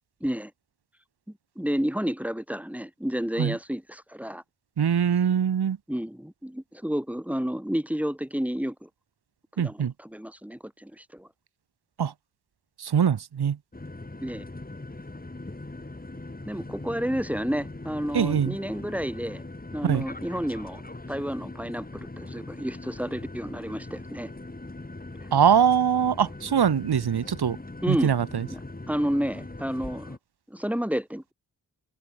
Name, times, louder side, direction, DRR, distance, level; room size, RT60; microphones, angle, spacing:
voice 1, 1.6-4.4 5.9-8.9 9.6-11.3 14.2-14.5 16.5-19.4 19.7-20.8 21.1-24.3 25.2-25.3 27.8-28.1 28.5-28.6 28.9-30.2 30.5-31.3, equal, 5° right, 2.5 m, -30 dB
voice 2, 4.8-5.8 9.6-9.9 12.0-12.1 12.8-13.6 18.1-18.5 19.8-20.0 25.3-27.6 27.9-28.5, right 8 dB, 70° right, 1.3 m, -23 dB
sound 1, 13.7-30.2, left 2 dB, 20° left, 5.6 m, -41 dB
wide cardioid pair, 90°, 40 cm